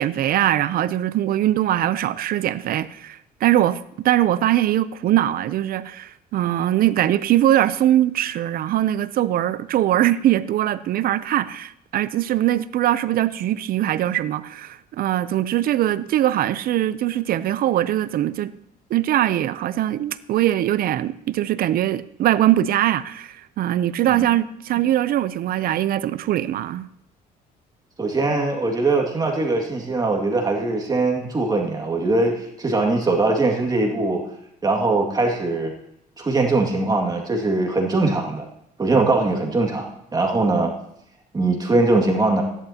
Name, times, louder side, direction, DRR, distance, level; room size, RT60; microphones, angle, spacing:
voice 1, 0.0-18.5 18.9-26.9, right 12 dB, 60° right, 0.5 m, -21 dB
voice 2, 28.0-34.2 34.6-35.7 36.2-38.5 38.8-40.7 41.3-42.4, right 2 dB, 25° right, 2.1 m, -21 dB
16.0 x 11.0 x 2.9 m
cardioid pair, 110°, 17 cm